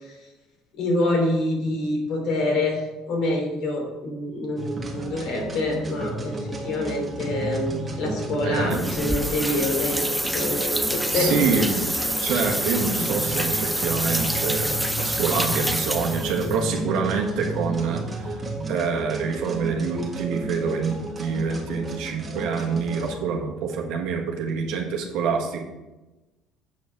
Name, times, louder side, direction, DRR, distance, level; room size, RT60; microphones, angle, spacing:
voice 1, 0.8-11.4 13.0-13.1, left 1 dB, 65° left, 0 dB, 3.0 m, -26 dB
sound 1, 4.6-23.2, right 1 dB, 20° right, 1.8 m, -33 dB
voice 2, 8.4-8.8 11.1-11.9 12.2-18.4 18.7-25.6, right 5 dB, 75° right, 1 dB, 1.5 m, -26 dB
sound 2, 8.7-16.6, equal, ahead, 0.6 m, -27 dB
8.3 x 5.3 x 4.7 m, 1.1 s
supercardioid pair, 100°, 0 cm